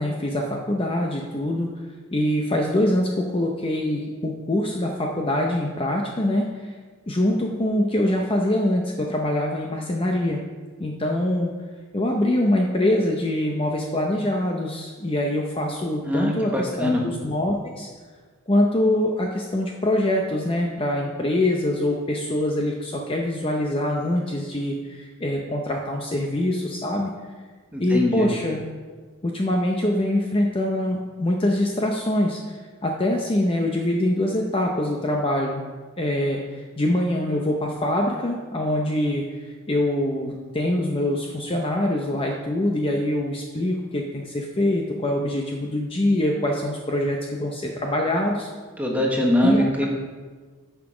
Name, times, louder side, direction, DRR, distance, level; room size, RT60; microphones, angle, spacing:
voice 1, 0.0-1.7 2.1-6.7 7.1-10.4 10.8-11.5 11.9-17.9 18.5-27.1 27.8-28.6 29.2-32.4 32.8-35.6 36.0-39.2 39.7-48.5 49.4-49.9, left 1 dB, 25° left, 1 dB, 0.6 m, -24 dB
voice 2, 16.1-17.0 27.7-28.3 48.8-49.9, left 1 dB, 5° right, -1 dB, 1.2 m, -22 dB
9.8 x 5.9 x 4.9 m, 1.4 s
head